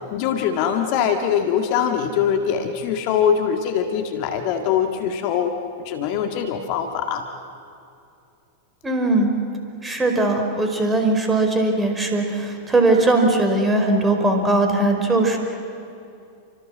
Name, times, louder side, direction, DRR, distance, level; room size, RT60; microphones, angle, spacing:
voice 1, 0.1-7.2, left 8 dB, 45° left, 5 dB, 1.9 m, -22 dB
voice 2, 8.8-9.3 9.8-15.4, right 2 dB, 15° right, 4 dB, 5.1 m, -19 dB
29.5 x 25.0 x 7.6 m, 2.5 s
figure-of-eight pair, 90°, 0 cm